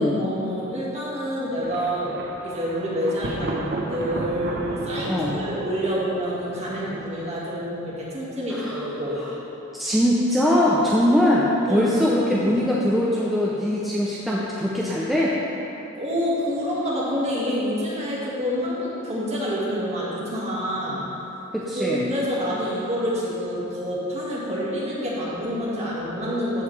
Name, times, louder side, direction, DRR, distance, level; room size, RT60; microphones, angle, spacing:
voice 1, 0.1-9.2 11.7-12.6 16.0-21.0 21.7-26.6, equal, 30° right, -7 dB, 1.8 m, -27 dB
Thunder, 1.6-7.4, right 2 dB, 55° right, 0.7 m, -34 dB
voice 2, 5.1-5.4 8.5-8.9 9.7-15.4 21.5-22.1, left 1 dB, ahead, -7 dB, 0.6 m, -21 dB
13.5 x 5.0 x 3.3 m, 3.0 s
head